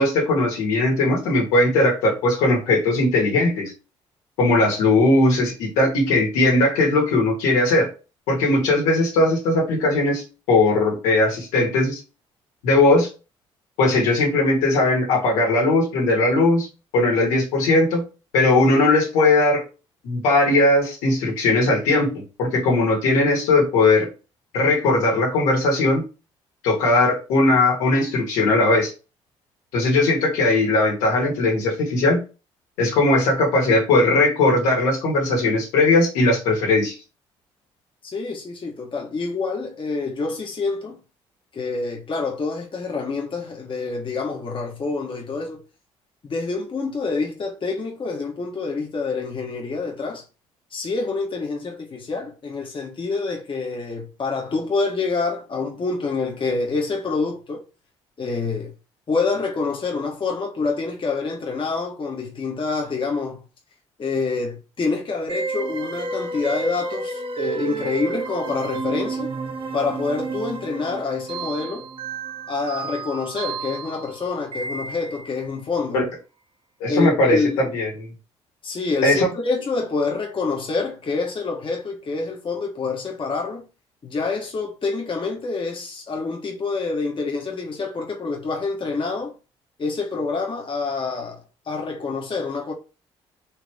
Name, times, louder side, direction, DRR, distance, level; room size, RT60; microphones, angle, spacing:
voice 1, 0.0-3.7 4.4-7.9 8.3-12.0 12.6-13.1 13.8-16.7 16.9-18.0 18.3-19.6 20.0-24.1 24.5-26.0 26.6-28.9 29.7-32.2 32.8-36.9 75.9-76.0 76.8-77.4 77.7-78.1 79.0-79.3, left 2 dB, 85° left, 2.0 m, -19 dB
voice 2, 38.0-41.0 41.5-45.6 46.2-50.2 50.7-57.6 58.2-58.7 59.1-63.4 64.0-69.3 69.7-71.9 72.5-76.0 76.9-77.6 78.6-83.7 84.0-89.3 89.8-92.7, left 4 dB, 45° left, 1.4 m, -27 dB
sound 1, 65.3-75.5, right 4 dB, 45° right, 0.9 m, -31 dB
4.7 x 3.2 x 3.5 m
supercardioid pair, 60°, 12 cm